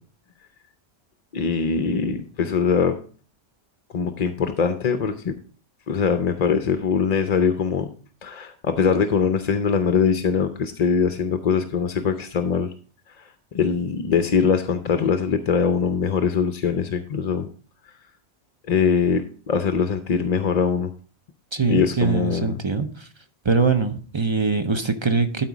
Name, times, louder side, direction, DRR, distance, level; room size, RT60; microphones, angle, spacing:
voice 1, 1.3-3.0 3.9-5.3 5.9-7.9 8.2-12.7 13.2-13.3 13.5-17.5 18.7-20.9 21.6-22.6, left 6 dB, 45° left, 8 dB, 0.6 m, -22 dB
voice 2, 21.5-22.9 23.5-25.4, right 4 dB, 30° right, 8 dB, 0.6 m, -22 dB
12.0 x 4.4 x 4.8 m, 0.42 s
omnidirectional pair, 1.2 m